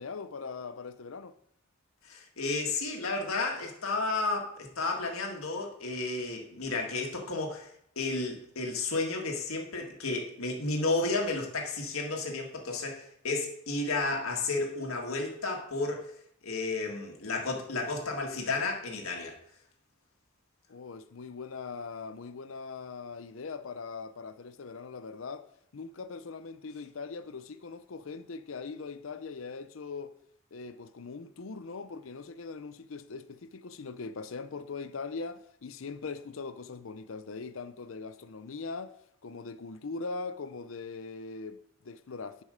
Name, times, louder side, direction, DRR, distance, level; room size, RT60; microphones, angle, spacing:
voice 1, 0.0-1.3 20.7-25.5 25.7-30.1 30.5-39.0 39.2-42.4, left 4 dB, 70° left, 0.6 m, -41 dB
voice 2, 2.0-16.1 16.4-19.4, left 3 dB, 85° left, 1.8 m, -32 dB
10.5 x 5.3 x 5.0 m
head